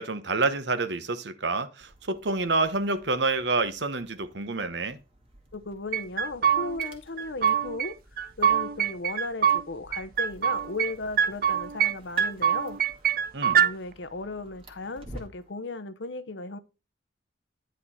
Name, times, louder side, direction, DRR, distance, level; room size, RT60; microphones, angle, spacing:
voice 1, 0.0-5.0 13.3-13.6, right 3 dB, 65° right, 1.0 m, -28 dB
sound 1, 1.8-15.5, right 1 dB, 30° right, 1.9 m, -52 dB
voice 2, 5.5-8.0 8.4-12.8 13.6-16.6, left 3 dB, 75° left, 0.8 m, -36 dB
sound 2, 5.9-6.9 7.2-7.9 8.2-9.6 9.9-10.9 11.2-11.9 12.2-13.7, right 8 dB, 50° right, 0.5 m, -24 dB
10.0 x 5.0 x 4.2 m
head